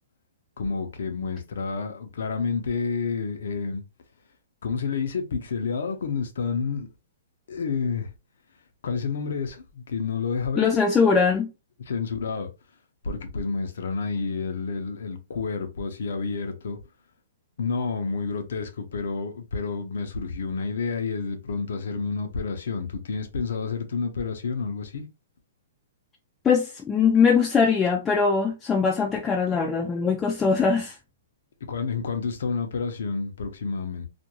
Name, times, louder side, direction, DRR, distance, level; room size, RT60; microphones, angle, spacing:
voice 1, 0.6-3.8 4.6-6.9 7.5-8.1 8.8-10.6 11.9-12.5 13.0-16.8 17.6-25.0 31.7-34.1, left 5 dB, 70° left, 0.6 m, -29 dB
voice 2, 10.6-11.5 26.4-31.0, left 5 dB, 15° left, 0.4 m, -21 dB
2.5 x 2.2 x 2.9 m
hypercardioid pair, 140°, 0 cm